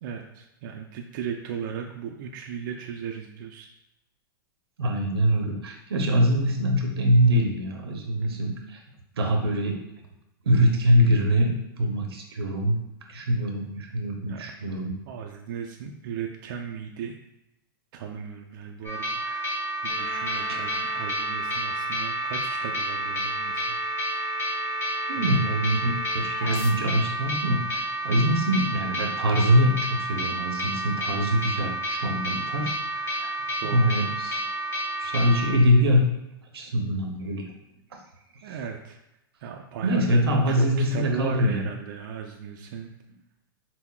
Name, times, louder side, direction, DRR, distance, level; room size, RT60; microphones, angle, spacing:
voice 1, 0.0-3.7 14.3-14.4 15.1-17.1 17.9-23.8 24.1-24.2 25.2-25.3 33.6-34.0 38.4-39.0 39.4-42.9, right 7 dB, 55° right, 2 dB, 0.4 m, -37 dB
voice 2, 4.8-8.8 9.1-9.8 10.4-12.8 13.1-15.0 25.1-33.3 33.7-34.4 35.0-36.0 36.5-37.5 38.4-38.5 39.8-41.7, equal, 85° right, 2 dB, 0.7 m, -23 dB
sound 1, 18.8-35.5, right 1 dB, 20° left, 1.0 m, -30 dB
sound 2, 19.9-26.7, equal, 60° left, 0.6 m, -35 dB
5.7 x 2.0 x 2.2 m, 0.90 s
hypercardioid pair, 120°, 13 cm